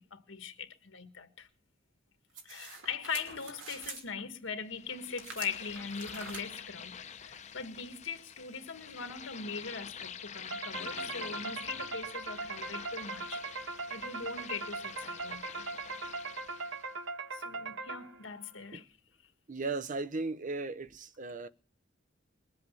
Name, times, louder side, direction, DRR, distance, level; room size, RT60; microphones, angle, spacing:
voice 1, 0.0-1.5 2.4-13.4 13.9-15.7 17.3-18.9, left 5 dB, 80° left, 1.6 m, -41 dB
sound 1, 2.3-4.0 5.2-6.4, right 4 dB, 90° right, 3.0 m, -45 dB
sound 2, 4.7-16.9, left 7 dB, 35° left, 0.7 m, -46 dB
sound 3, 10.5-18.4, right 3 dB, 70° right, 1.0 m, -40 dB
voice 2, 19.5-21.5, right 3 dB, 40° right, 0.7 m, -36 dB
21.5 x 7.8 x 6.9 m
head